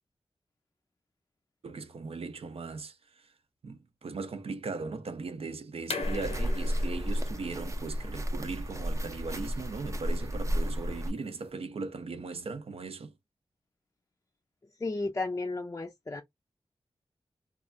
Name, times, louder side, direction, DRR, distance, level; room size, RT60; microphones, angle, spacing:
voice 1, 1.6-3.3 3.6-13.1, right 4 dB, 70° right, 0.6 m, -38 dB
sound 1, 5.8-11.4, left 4 dB, 90° left, 0.7 m, -43 dB
sound 2, 6.0-11.1, equal, 30° right, 0.5 m, -32 dB
voice 2, 14.6-16.2, left 3 dB, 30° left, 0.4 m, -34 dB
3.2 x 2.3 x 2.5 m
wide cardioid pair, 80°, 10 cm